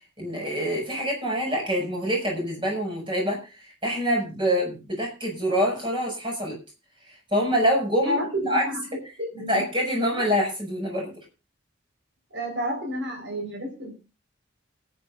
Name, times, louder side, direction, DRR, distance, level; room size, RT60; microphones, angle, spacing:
voice 1, 0.2-6.5 7.3-8.2 8.4-8.6 9.5-11.1, equal, 25° right, 0 dB, 6.0 m, -25 dB
voice 2, 8.0-8.8 9.2-9.6 10.1-10.3 12.3-13.9, equal, 65° right, 2 dB, 4.4 m, -30 dB
28.0 x 9.4 x 2.5 m, 0.30 s
head